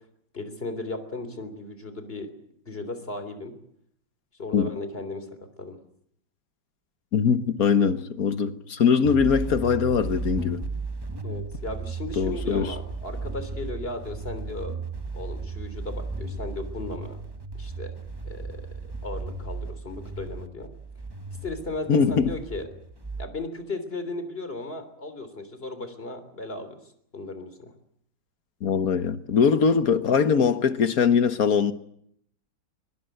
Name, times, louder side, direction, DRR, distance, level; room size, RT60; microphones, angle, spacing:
voice 1, 0.3-2.3 2.7-3.5 4.4-5.3 5.6-5.8 11.2-14.8 15.1-17.2 17.6-18.0 18.2-18.7 19.0-20.7 21.4-22.6 23.2-26.8 27.1-27.7, left 2 dB, 30° left, 3.6 m, -36 dB
voice 2, 7.1-10.6 12.2-12.7 21.9-22.3 28.6-31.7, left 6 dB, 50° left, 1.5 m, -22 dB
sound 1, 9.0-23.3, right 3 dB, 15° right, 0.9 m, -35 dB
23.5 x 22.0 x 8.0 m
omnidirectional pair, 2.1 m